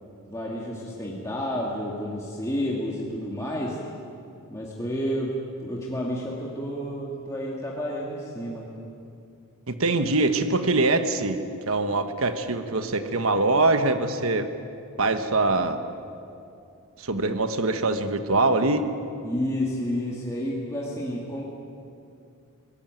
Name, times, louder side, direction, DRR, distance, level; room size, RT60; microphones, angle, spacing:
voice 1, 0.3-3.8 4.5-8.7 19.2-21.4, equal, 15° left, -4 dB, 2.1 m, -30 dB
voice 2, 9.7-11.4 11.7-14.5 15.0-15.8 17.0-18.9, right 2 dB, 70° right, 8 dB, 1.3 m, -23 dB
22.5 x 18.0 x 9.1 m, 2.6 s
head